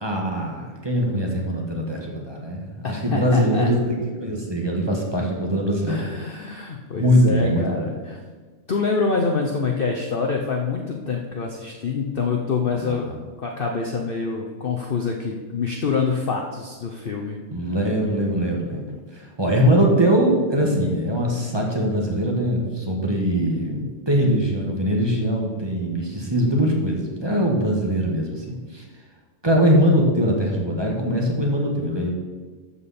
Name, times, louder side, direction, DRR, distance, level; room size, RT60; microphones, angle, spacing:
voice 1, 0.0-3.9 4.2-6.1 7.0-8.0 12.7-13.2 17.5-28.8 29.4-32.1, equal, 20° right, 0 dB, 1.6 m, -22 dB
voice 2, 2.8-3.7 5.9-8.2 8.7-13.1 13.4-17.4, left 4 dB, 45° left, 1 dB, 0.9 m, -26 dB
12.0 x 7.3 x 4.2 m, 1.4 s
omnidirectional pair, 1.5 m